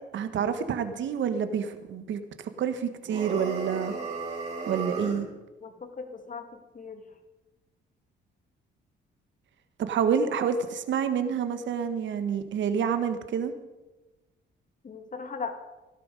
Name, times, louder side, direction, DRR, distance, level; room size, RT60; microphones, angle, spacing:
voice 1, 0.1-2.2 2.6-3.9 4.7-5.3 9.8-13.5, right 7 dB, 70° right, 9 dB, 1.4 m, -28 dB
sound 1, 3.0-5.3, right 3 dB, 35° right, 5.3 m, -34 dB
voice 2, 5.6-7.2 14.8-15.6, left 5 dB, 40° left, 7 dB, 2.1 m, -39 dB
16.5 x 12.0 x 5.3 m, 1.1 s
cardioid pair, 90°, 20 cm